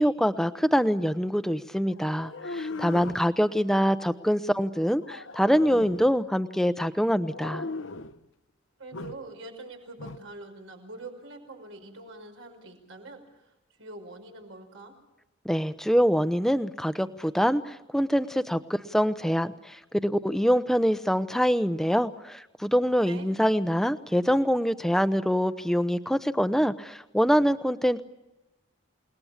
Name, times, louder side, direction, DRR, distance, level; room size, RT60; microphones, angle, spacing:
voice 1, 0.0-7.7 15.4-28.0, equal, ahead, 11 dB, 0.8 m, -25 dB
sound 1, 1.9-3.3 5.0-6.1 7.3-8.2 8.9-9.2 10.0-10.2, left 3 dB, 75° left, 1.0 m, -37 dB
voice 2, 8.8-13.2 13.8-14.9 23.0-23.3, right 2 dB, 85° right, 4 dB, 5.7 m, -44 dB
29.5 x 19.5 x 7.3 m, 0.98 s
head